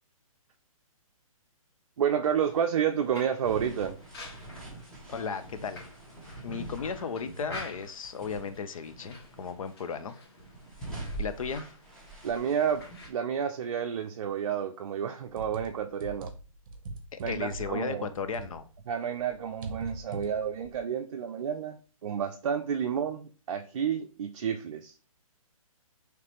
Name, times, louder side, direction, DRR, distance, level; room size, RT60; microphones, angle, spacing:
voice 1, 2.0-4.0 12.2-16.3 17.2-18.1 18.9-21.8 22.0-24.9, right 8 dB, 55° right, 0.4 m, -30 dB
sound 1, 2.4-13.1, left 2 dB, 45° left, 1.1 m, -50 dB
sound 2, 3.4-8.5 8.8-9.7 10.2-13.1, right 2 dB, 5° left, 0.9 m, -43 dB
voice 2, 5.1-5.8 6.4-10.2 11.2-11.6 17.1-18.6, left 6 dB, 70° left, 0.6 m, -35 dB
sound 3, 15.4-18.9 19.1-20.8, right 3 dB, 35° right, 0.8 m, -41 dB
4.9 x 3.2 x 3.0 m
hypercardioid pair, 160°, 19 cm